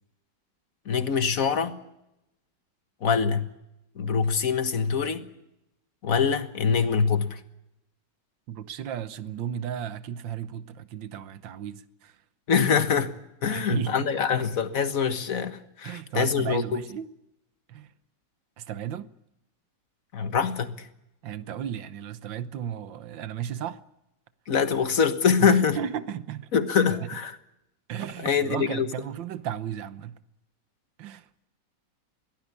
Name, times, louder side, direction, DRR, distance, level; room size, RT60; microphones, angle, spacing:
voice 1, 0.9-1.8 3.0-3.5 4.0-5.3 6.0-7.4 12.5-13.1 13.4-16.8 20.1-20.9 24.5-25.8 26.5-27.3 28.2-28.9, left 6 dB, 50° left, 1.8 m, -24 dB
voice 2, 8.5-12.2 13.4-14.1 15.8-17.1 17.7-17.9 18.6-19.1 21.2-23.8 25.4-26.5 26.9-27.0 27.9-30.2 31.0-31.3, right 9 dB, 90° right, 1.7 m, -34 dB
23.0 x 17.0 x 9.7 m
omnidirectional pair, 2.0 m